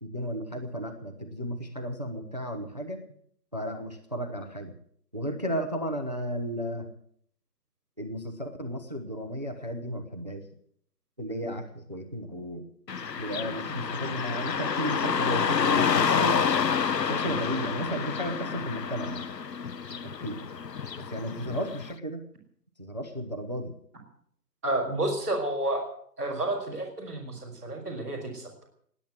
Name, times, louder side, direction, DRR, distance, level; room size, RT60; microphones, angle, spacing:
voice 1, 0.0-3.0 3.5-4.7 5.1-6.9 8.0-10.5 11.2-12.7 13.2-16.5 17.1-19.3 19.9-20.4 21.0-22.2 22.8-23.7, equal, 25° right, 6 dB, 1.0 m, -34 dB
Car passing by / Traffic noise roadway noise, 12.9-21.9, left 6 dB, 75° left, 0.9 m, -28 dB
voice 2, 24.6-25.8 26.2-28.5, right 1 dB, 10° right, -11 dB, 3.0 m, -30 dB
19.5 x 9.0 x 8.1 m, 0.65 s
figure-of-eight pair, 175°, 49 cm